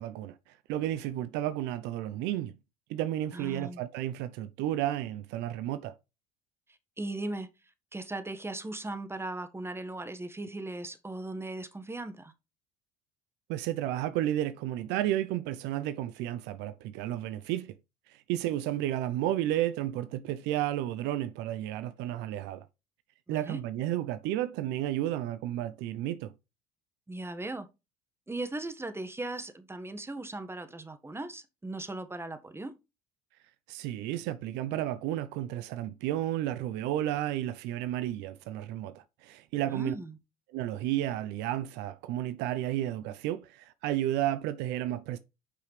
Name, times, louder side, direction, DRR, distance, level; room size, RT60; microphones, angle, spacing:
voice 1, 0.0-2.5 2.9-6.0 13.5-17.7 18.1-22.7 23.3-26.3 33.7-39.9 40.5-45.2, right 13 dB, 65° right, 0.7 m, -32 dB
voice 2, 3.3-3.8 7.0-7.5 7.9-12.3 23.3-23.6 27.1-27.7 28.3-32.7 39.7-40.1, right 2 dB, 10° right, 1.6 m, -38 dB
9.9 x 5.6 x 3.3 m
hypercardioid pair, 65°, 19 cm